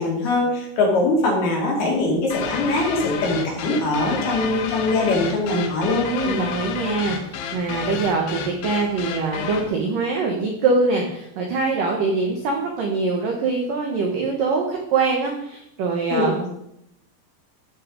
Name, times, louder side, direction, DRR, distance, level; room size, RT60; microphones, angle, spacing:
voice 1, 0.0-6.4 16.1-16.3, left 2 dB, 55° left, -2 dB, 3.7 m, -22 dB
sound 1, 2.3-9.7, left 7 dB, 75° left, 3.2 m, -31 dB
voice 2, 6.1-16.5, right 4 dB, 75° right, 1 dB, 1.9 m, -23 dB
14.0 x 5.9 x 5.2 m, 0.77 s
omnidirectional pair, 6.0 m